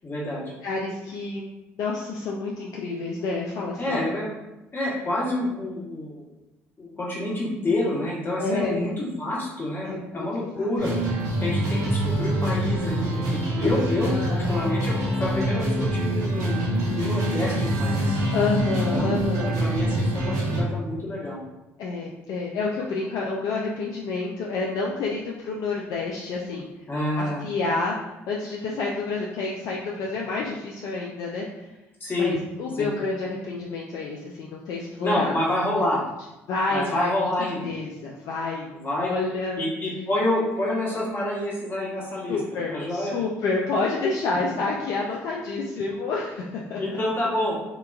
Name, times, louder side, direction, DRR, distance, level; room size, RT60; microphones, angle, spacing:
voice 1, 0.0-0.4 3.8-4.3 4.7-6.2 6.8-16.6 16.9-18.2 18.9-19.1 19.4-21.4 26.9-27.4 32.0-32.4 32.7-32.9 35.0-36.0 36.7-37.7 38.7-39.1 39.6-42.4 42.7-43.2 46.8-47.6, left 1 dB, 30° left, -5 dB, 1.1 m, -28 dB
voice 2, 0.6-1.4 1.8-4.1 8.4-8.8 9.8-10.3 10.6-10.7 13.6-14.6 18.3-19.5 21.8-26.7 27.2-31.7 32.2-35.3 36.5-37.1 37.6-38.7 39.0-39.6 42.3-46.8, left 3 dB, 60° left, -2 dB, 0.4 m, -29 dB
sound 1, 10.8-20.6, right 1 dB, 55° right, 0.9 m, -25 dB
2.8 x 2.3 x 2.3 m, 1.0 s
hypercardioid pair, 60°, 7 cm